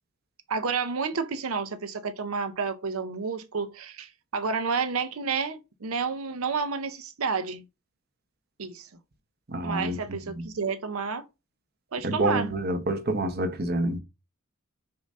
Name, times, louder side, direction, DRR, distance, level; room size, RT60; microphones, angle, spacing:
voice 1, 0.5-7.6 8.6-8.9 9.6-11.2 11.9-12.5, right 5 dB, 85° right, 0.7 m, -30 dB
voice 2, 9.5-10.0 10.4-10.5 12.0-14.0, right 1 dB, 45° right, 1.0 m, -27 dB
6.7 x 2.6 x 5.3 m
head